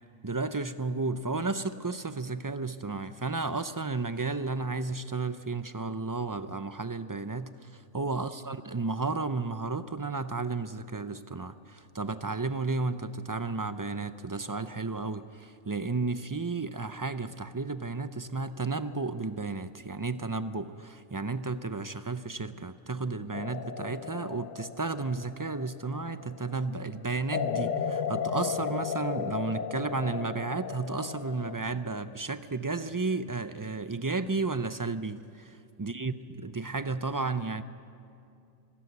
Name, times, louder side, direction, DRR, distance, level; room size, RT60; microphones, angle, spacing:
voice 1, 0.2-37.6, right 3 dB, 35° right, 11 dB, 0.3 m, -33 dB
sound 1, 23.3-26.3 27.3-31.6, left 7 dB, 80° left, 1.4 m, -34 dB
25.5 x 14.5 x 9.6 m, 2.5 s
omnidirectional pair, 1.3 m